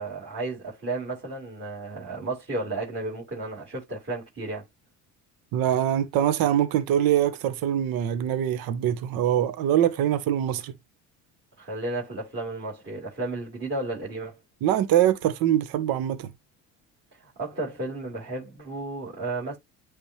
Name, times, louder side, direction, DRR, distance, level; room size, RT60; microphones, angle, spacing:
voice 1, 0.0-4.6 11.6-14.4 17.2-19.6, right 2 dB, 35° right, 4.7 m, -33 dB
voice 2, 5.5-10.7 14.6-16.3, right 11 dB, 60° right, 1.0 m, -23 dB
8.6 x 3.5 x 3.1 m
supercardioid pair, 80°, 39 cm